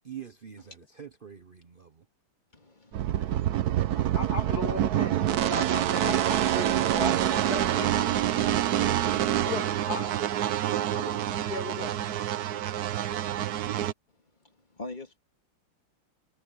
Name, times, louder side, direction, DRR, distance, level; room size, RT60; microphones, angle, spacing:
voice 1, 0.0-2.0, right 9 dB, 85° right, 0.4 m, -45 dB
voice 2, 2.5-3.5 14.7-15.2, left 2 dB, 20° left, 2.6 m, -43 dB
sound 1, 2.9-13.9, right 11 dB, 65° right, 1.0 m, -26 dB
voice 3, 3.2-3.6 3.9-8.1 9.3-10.5 10.9-12.0, left 3 dB, 45° left, 2.9 m, -38 dB
omnidirectional pair, 2.4 m